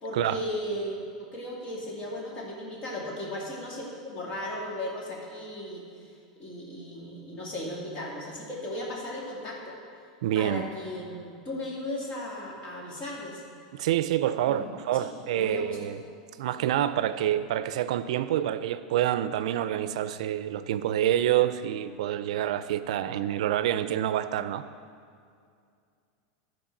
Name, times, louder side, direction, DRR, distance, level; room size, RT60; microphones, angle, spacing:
voice 1, 0.0-1.0 1.3-9.8 10.3-13.4 14.4-15.8 16.4-16.5, left 1 dB, 35° left, -4 dB, 2.6 m, -36 dB
voice 2, 10.2-10.6 13.7-16.0 16.4-24.6, right 11 dB, 75° right, 13 dB, 0.4 m, -27 dB
13.0 x 4.5 x 6.0 m, 2.3 s
supercardioid pair, 145°, 4 cm